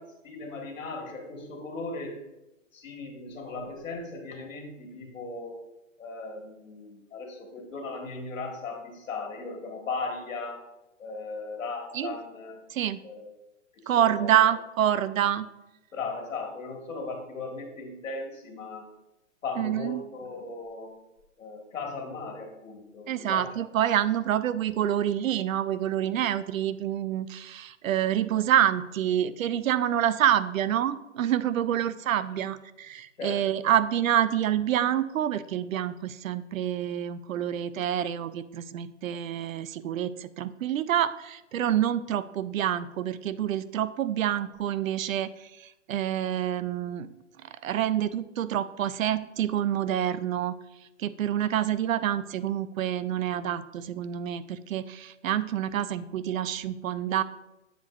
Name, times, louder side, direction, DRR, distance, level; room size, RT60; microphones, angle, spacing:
voice 1, 0.0-2.2 2.7-5.6 6.0-10.6 11.0-12.6 13.0-13.3 13.7-14.4 15.9-18.8 19.4-20.9 21.4-23.5 33.2-33.6, left 3 dB, 75° left, 2 dB, 1.8 m, -37 dB
voice 2, 12.7-13.0 13.9-15.5 19.6-20.0 23.1-47.1 47.4-50.6 51.0-57.2, right 10 dB, 90° right, 15 dB, 0.5 m, -27 dB
7.6 x 5.4 x 2.4 m, 0.96 s
hypercardioid pair, 165°, 39 cm